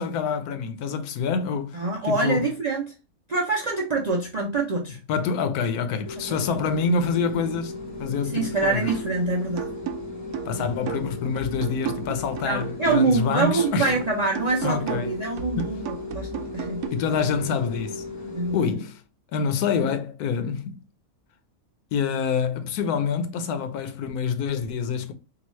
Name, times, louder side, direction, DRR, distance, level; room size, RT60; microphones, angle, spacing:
voice 1, 0.0-2.4 5.1-7.7 8.0-8.9 10.5-14.0 14.6-15.1 15.6-15.7 16.9-18.0 18.5-19.0 19.3-20.8 21.9-25.1, left 5 dB, 80° left, 1.1 m, -26 dB
voice 2, 1.7-2.9 3.3-5.0 6.3-6.4 8.2-9.7 12.4-16.8 18.3-18.8, right 3 dB, 55° right, 0.4 m, -25 dB
sound 1, 6.0-18.7, left 3 dB, 15° left, 0.6 m, -36 dB
sound 2, 8.9-9.2 9.6-13.3 13.6-16.9, right 8 dB, 80° right, 1.1 m, -34 dB
3.8 x 2.3 x 3.0 m
omnidirectional pair, 1.6 m